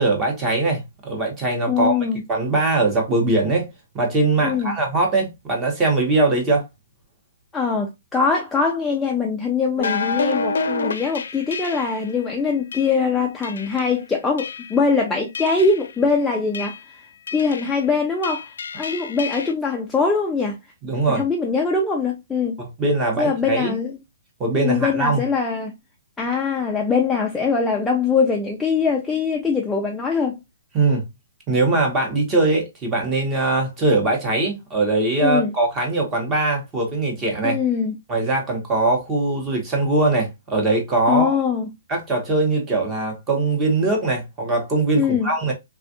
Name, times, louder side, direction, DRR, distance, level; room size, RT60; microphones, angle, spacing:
voice 1, 0.0-2.0 2.3-3.7 3.9-6.7 20.8-21.2 22.6-23.7 24.4-25.2 30.7-31.1 31.5-37.6 38.1-41.4 41.9-45.5, right 2 dB, 15° right, 0.9 m, -21 dB
voice 2, 1.7-2.2 4.4-4.7 7.5-17.0 17.3-18.5 18.7-20.6 21.1-22.6 23.2-24.0 24.6-25.7 26.2-30.4 35.2-35.5 37.4-37.9 41.1-41.7 45.0-45.3, left 5 dB, 5° left, 0.3 m, -22 dB
sound 1, 9.8-12.1 12.7-12.9 13.4-13.9 14.4-14.9 15.3-15.9 16.5-16.8 17.3-17.8 18.2-19.5, left 4 dB, 75° left, 0.5 m, -28 dB
3.3 x 2.3 x 2.6 m
hypercardioid pair, 175°, 0 cm